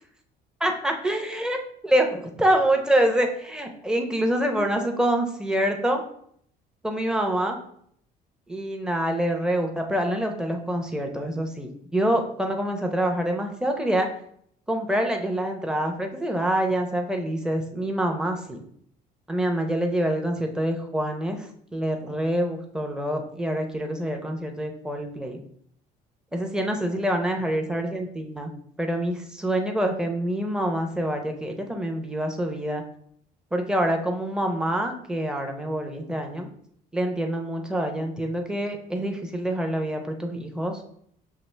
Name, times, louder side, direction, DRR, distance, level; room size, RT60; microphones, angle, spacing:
voice 1, 0.6-1.6 1.8-6.0 6.8-7.6 8.5-14.1 14.7-18.6 19.3-25.4 26.3-28.5 28.8-32.8 33.5-36.5 36.9-40.8, right 1 dB, 5° right, 3 dB, 0.6 m, -26 dB
5.8 x 2.5 x 3.2 m, 0.66 s
cardioid pair, 110°, 17 cm